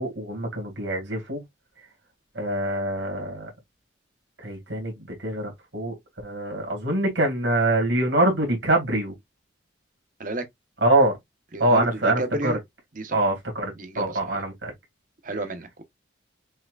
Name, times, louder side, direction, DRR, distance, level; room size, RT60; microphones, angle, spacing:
voice 1, 0.0-1.4 2.4-3.5 4.4-4.9 5.2-5.9 6.2-9.1 10.8-11.1 11.6-12.6 13.1-14.7, right 1 dB, 70° right, 2.0 m, -24 dB
voice 2, 11.5-12.6 13.0-13.2 13.8-14.4 15.2-15.8, right 2 dB, 45° right, 1.0 m, -32 dB
5.7 x 2.9 x 2.4 m
head